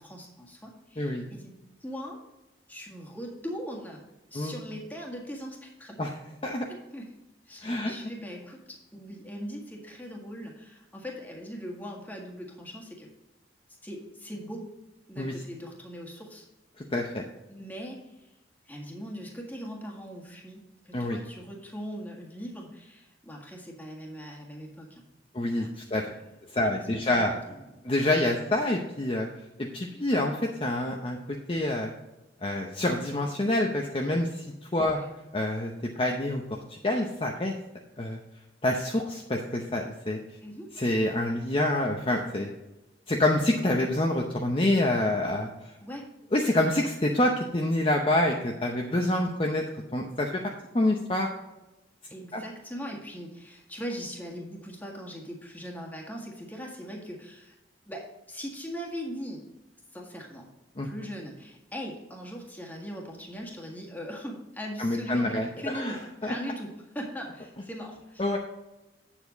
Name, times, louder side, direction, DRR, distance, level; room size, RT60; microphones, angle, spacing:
voice 1, 0.0-1.5 1.8-2.2 2.7-4.0 4.3-6.0 6.7-7.1 7.5-13.1 13.8-14.7 15.1-16.4 17.5-18.3 18.7-25.1 25.6-26.3 26.6-27.9 34.9-35.1 40.4-40.7 45.8-46.1 52.1-57.6 57.9-59.4 59.9-60.5 60.8-68.4, equal, 10° left, -1 dB, 1.7 m, -40 dB
voice 2, 7.6-7.9 15.2-15.3 16.9-17.2 20.9-21.2 25.3-26.1 26.5-27.3 27.8-29.3 29.7-31.9 32.4-34.4 34.7-35.0 35.3-35.7 36.0-36.4 36.7-37.5 38.0-38.2 38.6-40.2 40.8-42.5 43.1-45.5 46.3-49.6 49.9-50.4 50.7-51.3 52.3-52.4 60.8-60.9 64.8-66.0 66.2-66.3 68.2-68.4, left 1 dB, 30° left, 1 dB, 0.7 m, -27 dB
8.6 x 7.2 x 4.0 m, 1.0 s
head